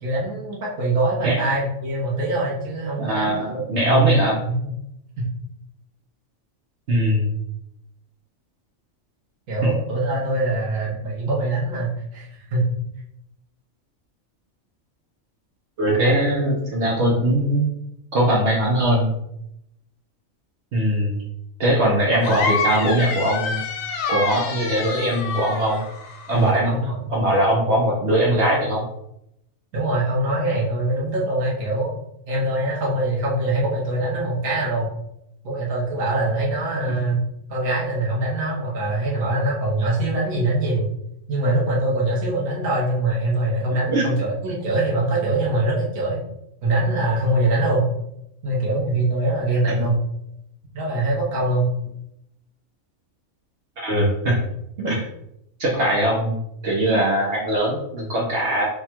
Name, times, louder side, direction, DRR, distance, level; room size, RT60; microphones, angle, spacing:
voice 1, 0.0-4.2 4.5-4.7 5.2-5.3 9.5-12.8 22.1-22.2 26.3-27.1 29.7-31.9 32.3-34.9 35.4-37.2 37.5-40.9 41.3-46.2 46.6-47.8 48.4-50.0 50.7-51.7, right 2 dB, 85° right, -5 dB, 1.4 m, -23 dB
voice 2, 3.0-4.3 6.9-7.3 9.6-9.7 15.8-17.6 18.1-19.2 20.7-21.2 21.6-23.6 24.1-25.8 26.3-26.8 27.1-28.9 43.9-44.1 49.7-49.8 53.8-54.4 54.8-55.0 55.6-56.4 56.6-58.7, right 1 dB, 60° right, -4 dB, 1.1 m, -21 dB
sound 1, 22.2-26.6, left 4 dB, 80° left, 1.1 m, -27 dB
3.5 x 2.3 x 4.3 m, 0.80 s
omnidirectional pair, 1.4 m